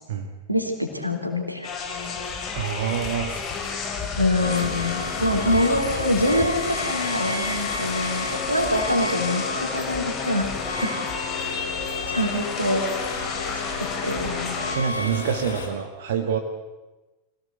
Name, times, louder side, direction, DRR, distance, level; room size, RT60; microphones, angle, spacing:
voice 1, 0.5-1.7 4.2-10.5 10.8-10.9 12.0-12.8 13.8-14.6, left 1 dB, 90° right, 4 dB, 3.4 m, -25 dB
sound 1, 1.6-14.8, left 5 dB, 35° left, 4.2 m, -31 dB
voice 2, 2.5-3.7 14.7-16.4, right 8 dB, 55° right, 4 dB, 1.9 m, -27 dB
sound 2, 4.4-15.7, left 3 dB, 75° left, 3.3 m, -32 dB
24.5 x 17.5 x 8.2 m, 1.1 s
figure-of-eight pair, 90°, 0 cm